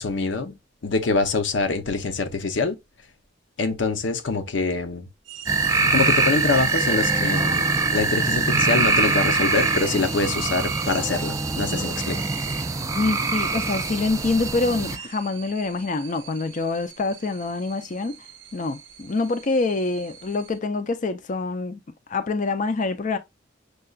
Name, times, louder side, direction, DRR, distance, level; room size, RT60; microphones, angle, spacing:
voice 1, 0.0-2.8 3.6-5.1 5.9-7.6 7.9-12.2, left 3 dB, 80° left, 0.7 m, -25 dB
sound 1, 5.3-20.6, right 9 dB, 80° right, 0.5 m, -39 dB
sound 2, 5.5-15.0, right 3 dB, 20° right, 0.4 m, -23 dB
voice 2, 13.0-18.2 18.5-21.8 22.1-23.2, left 3 dB, 45° left, 0.5 m, -26 dB
6.5 x 2.3 x 2.3 m
head